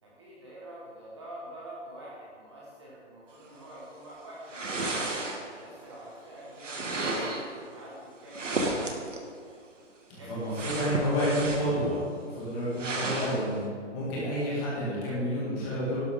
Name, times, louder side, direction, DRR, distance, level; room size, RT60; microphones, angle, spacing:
voice 1, 0.0-5.0 5.5-9.5 10.2-11.1, right 1 dB, 25° right, -6 dB, 1.6 m, -46 dB
sound 1, 4.5-5.7 6.6-7.5 8.3-9.2 10.5-11.8 12.2-12.3 12.8-13.4, right 2 dB, 85° right, 1.9 m, -32 dB
voice 2, 10.1-12.0 12.3-13.6 13.9-16.0, equal, 10° left, -7 dB, 2.1 m, -29 dB
12.0 x 11.5 x 3.7 m, 2.2 s
hypercardioid pair, 175°, 36 cm